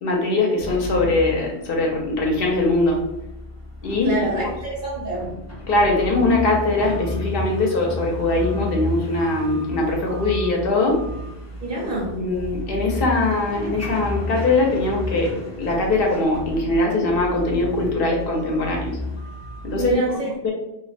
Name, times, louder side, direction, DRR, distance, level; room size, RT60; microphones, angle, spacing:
voice 1, 0.0-3.0 3.8-4.1 5.7-11.0 12.2-19.0 19.6-19.9 20.4-20.5, left 2 dB, 65° left, 0 dB, 0.7 m, -21 dB
sound 1, 0.6-20.0, left 1 dB, 20° left, 0.4 m, -32 dB
voice 2, 4.0-5.3 11.6-12.2 19.7-20.3, right 2 dB, 60° right, -4 dB, 0.8 m, -26 dB
2.5 x 2.0 x 2.4 m, 0.90 s
omnidirectional pair, 1.1 m